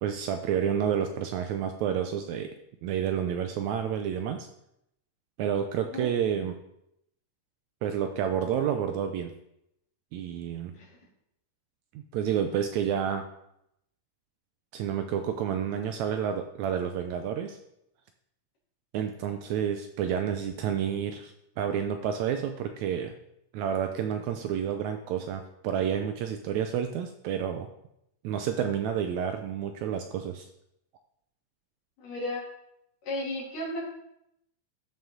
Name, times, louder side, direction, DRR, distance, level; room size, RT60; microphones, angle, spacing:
voice 1, 0.0-2.5 2.8-4.5 5.4-6.6 7.8-9.3 10.1-10.7 12.1-13.2 14.7-17.6 18.9-23.1 23.5-27.7 28.2-30.5, right 8 dB, 80° right, 6 dB, 1.7 m, -29 dB
voice 2, 32.0-32.4 33.0-33.8, left 1 dB, 80° left, -5 dB, 4.5 m, -33 dB
13.0 x 5.5 x 3.8 m, 0.79 s
omnidirectional pair, 3.7 m